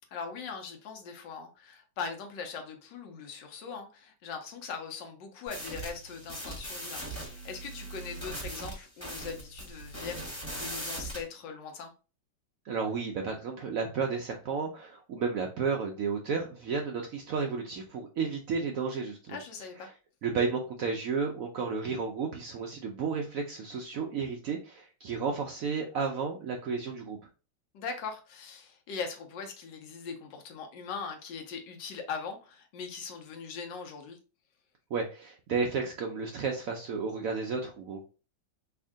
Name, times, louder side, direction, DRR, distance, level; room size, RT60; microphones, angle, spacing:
voice 1, 0.1-11.9 19.3-19.9 27.7-34.2, left 5 dB, 75° left, 1.4 m, -40 dB
sound 1, 5.5-11.2, right 1 dB, 10° left, 1.2 m, -40 dB
voice 2, 12.6-19.4 20.2-27.2 34.9-38.0, right 5 dB, 85° right, 0.7 m, -32 dB
3.5 x 2.5 x 3.5 m
omnidirectional pair, 2.1 m